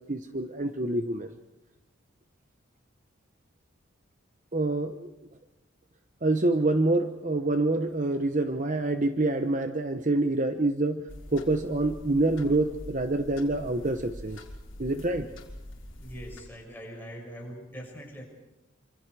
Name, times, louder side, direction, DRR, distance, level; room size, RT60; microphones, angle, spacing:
voice 1, 0.1-1.3 4.5-5.1 6.2-11.0 11.3-14.4 14.8-15.3, right 2 dB, 40° right, 8 dB, 1.0 m, -26 dB
sound 1, 11.1-16.4, left 1 dB, 75° left, 3.9 m, -44 dB
voice 2, 15.9-18.2, equal, 10° left, -1 dB, 6.4 m, -42 dB
27.0 x 26.0 x 4.9 m, 0.98 s
head